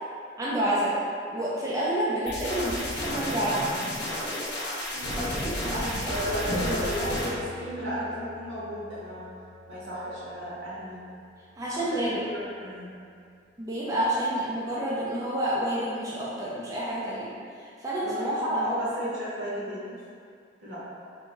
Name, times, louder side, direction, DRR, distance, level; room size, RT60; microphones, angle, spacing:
voice 1, 0.4-0.9 1.3-3.7 5.2-6.1 11.6-12.1 13.6-17.3 17.8-18.6, right 1 dB, 20° right, -8 dB, 0.4 m, -29 dB
sound 1, 2.3-7.3, left 1 dB, 60° left, 0.8 m, -32 dB
voice 2, 4.9-5.2 5.6-9.3 9.7-11.0 11.9-13.0 18.0-20.0 20.6-20.8, equal, 80° right, -9 dB, 1.2 m, -34 dB
Acoustic guitar / Strum, 6.4-11.7, left 1 dB, 10° left, 1.0 m, -40 dB
2.8 x 2.6 x 3.7 m, 2.3 s
head